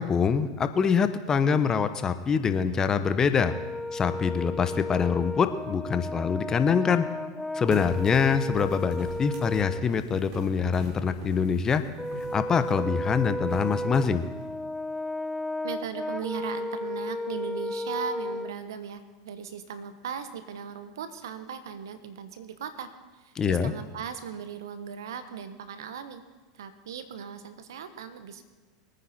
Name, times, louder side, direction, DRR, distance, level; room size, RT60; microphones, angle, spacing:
voice 1, 0.0-3.5 3.9-7.0 7.5-11.8 12.3-14.2 23.4-23.7, left 6 dB, 25° left, 10 dB, 1.0 m, -25 dB
Brass instrument, 3.4-9.9 12.0-18.6, left 1 dB, 5° left, 0.3 m, -34 dB
sound 1, 7.7-14.5, right 2 dB, 45° right, 4.6 m, -42 dB
voice 2, 15.6-26.2 26.5-28.4, right 7 dB, 80° right, 10 dB, 1.3 m, -38 dB
23.0 x 9.4 x 4.4 m, 1.3 s
hypercardioid pair, 95°, 2 cm